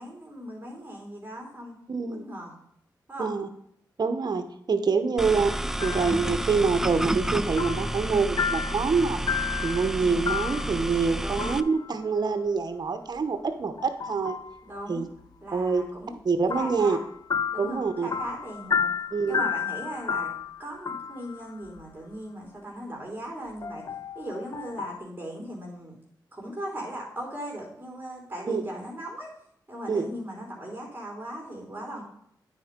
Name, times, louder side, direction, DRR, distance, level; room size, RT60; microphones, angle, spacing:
voice 1, 0.0-1.8 2.2-2.5 3.1-3.3 10.0-10.2 11.2-11.5 14.6-15.1 15.4-16.2 16.6-17.0 17.5-18.9 19.3-20.3 20.6-23.8 24.1-25.9 26.3-29.3 29.7-32.0, right 1 dB, 20° right, -2 dB, 3.0 m, -38 dB
voice 2, 1.9-2.2 3.2-3.5 4.0-5.5 5.8-9.2 9.6-14.4 14.9-15.1 15.5-15.8 16.2-17.0 17.6-18.1 19.1-19.4 28.5-28.6 29.9-30.1, right 4 dB, 55° right, 8 dB, 0.9 m, -26 dB
sound 1, 5.2-11.6, right 1 dB, 5° right, 0.4 m, -30 dB
sound 2, 5.8-6.2 6.7-8.1 8.4-11.1 11.4-11.9 13.8-14.6 16.5-21.8 23.6-25.0, left 7 dB, 55° left, 0.4 m, -32 dB
9.2 x 4.4 x 5.1 m, 0.72 s
cardioid pair, 50°, 8 cm